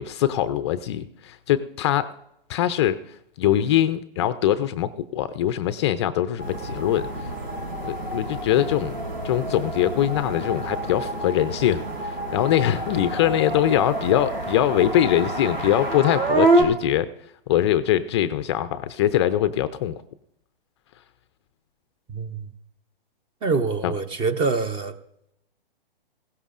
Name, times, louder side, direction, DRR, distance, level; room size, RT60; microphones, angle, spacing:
voice 1, 0.0-2.2 2.5-7.3 7.8-9.0 9.2-17.1 17.5-20.0 23.8-23.9, left 11 dB, 30° left, 12 dB, 0.4 m, -23 dB
sound 1, 6.4-16.6, right 2 dB, 85° right, 5.8 m, -27 dB
voice 2, 22.1-22.5 23.4-25.0, right 4 dB, 15° right, 12 dB, 0.7 m, -25 dB
19.0 x 16.0 x 2.5 m, 0.81 s
hypercardioid pair, 130°, 29 cm